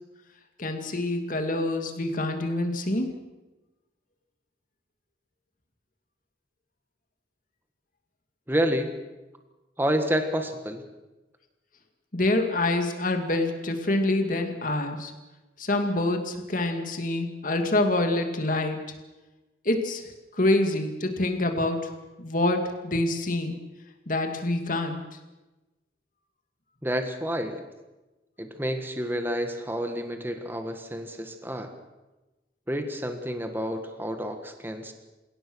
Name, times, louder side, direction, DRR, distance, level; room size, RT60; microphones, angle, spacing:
voice 1, 0.6-3.1 12.1-15.1 15.6-18.8 19.6-20.1 20.4-21.8 22.2-23.6 24.1-25.0, left 2 dB, 45° left, 5 dB, 2.3 m, -26 dB
voice 2, 8.5-8.9 9.8-10.8 26.8-27.6 28.4-31.7 32.7-34.9, equal, 10° right, 6 dB, 1.6 m, -29 dB
28.0 x 17.5 x 6.3 m, 1.1 s
head